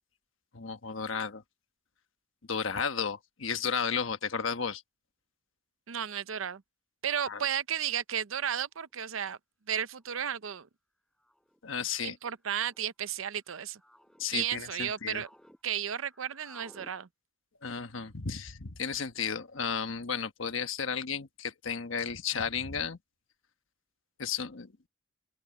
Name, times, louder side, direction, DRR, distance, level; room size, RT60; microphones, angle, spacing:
voice 1, 0.5-1.4 2.5-4.8 7.3-7.4 11.6-12.2 14.2-15.2 17.6-23.0 24.2-24.7, left 6 dB, 70° left, 1.2 m, -33 dB
voice 2, 5.9-6.6 7.0-9.4 9.7-10.7 12.0-13.8 14.3-15.3 15.6-17.1, right 9 dB, 80° right, 0.7 m, -33 dB
sound 1, 8.9-9.0 10.0-10.3 11.2-11.6 12.5-12.9 13.5-14.3 14.7-15.6 15.9-16.9, equal, 5° left, 6.3 m, -58 dB
open air
head